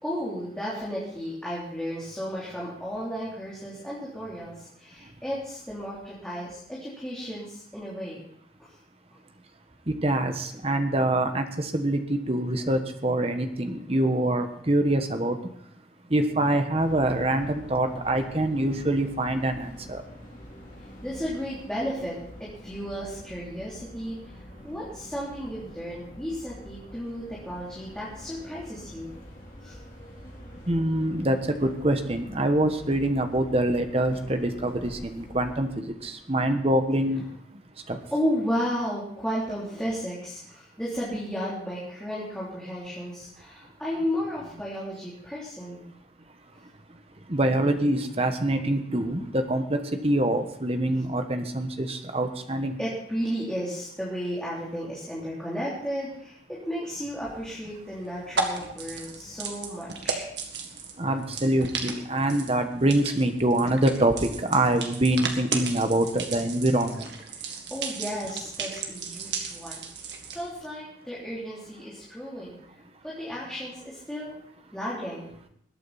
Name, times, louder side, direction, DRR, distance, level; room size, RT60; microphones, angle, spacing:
voice 1, 0.0-8.2 8.6-8.8 21.0-29.1 29.6-29.8 38.1-45.8 52.8-60.3 67.3-72.6 73.0-74.3 74.7-75.3, equal, 5° left, -8 dB, 3.2 m, -33 dB
voice 2, 9.9-15.4 16.1-20.0 30.7-37.2 37.9-38.0 47.3-52.7 61.0-67.1, right 1 dB, 30° right, 7 dB, 1.2 m, -25 dB
sound 1, 16.8-35.7, equal, 45° left, 3.6 m, -46 dB
sound 2, 57.2-70.5, right 4 dB, 65° right, 1.8 m, -35 dB
21.0 x 9.0 x 4.2 m, 0.69 s
head